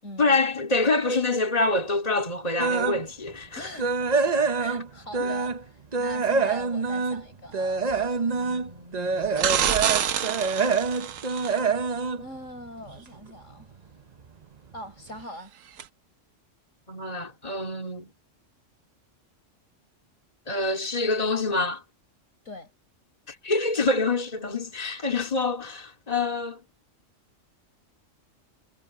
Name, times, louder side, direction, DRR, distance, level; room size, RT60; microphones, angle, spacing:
voice 1, 0.2-3.7 5.2-5.3 16.9-18.1 20.5-21.8 23.3-26.6, left 3 dB, 30° left, 2.8 m, -26 dB
sound 1, 2.6-3.0 3.4-5.6 5.9-13.1 13.5-13.8 14.2-14.3 14.7-14.8, right 4 dB, 35° right, 0.9 m, -26 dB
voice 2, 3.6-3.9 4.3-5.6 6.0-7.9 8.3-9.0 12.2-13.7 14.7-15.5 22.4-22.7, left 1 dB, 75° left, 5.2 m, -42 dB
sound 2, 9.4-11.6 15.8-15.9, right 9 dB, 85° right, 1.3 m, -26 dB
omnidirectional pair, 1.3 m